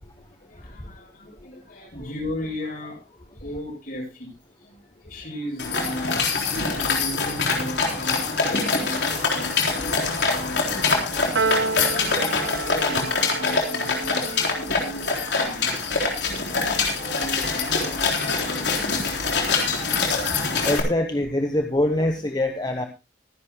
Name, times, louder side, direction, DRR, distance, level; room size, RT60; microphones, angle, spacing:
voice 1, 0.4-20.0, left 1 dB, 50° left, 0 dB, 8.0 m, -37 dB
sound 1, 5.6-20.8, left 4 dB, 70° left, 4.0 m, -24 dB
Piano, 11.3-17.9, right 4 dB, 90° right, 0.9 m, -32 dB
voice 2, 20.6-22.9, left 1 dB, 25° left, 5 dB, 1.1 m, -24 dB
24.5 x 11.0 x 2.2 m, 0.25 s
head